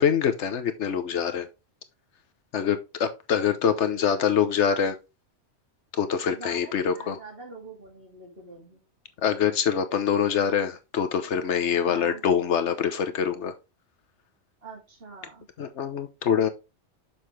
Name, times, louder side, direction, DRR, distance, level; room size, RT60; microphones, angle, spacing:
voice 1, 0.0-1.5 2.5-5.0 5.9-7.2 9.2-13.5 15.6-16.5, left 8 dB, 75° left, 1.2 m, -25 dB
voice 2, 3.4-4.3 6.3-8.8 11.9-12.2 14.6-15.5, right 3 dB, 55° right, 3.0 m, -45 dB
7.0 x 5.6 x 3.3 m
omnidirectional pair, 1.2 m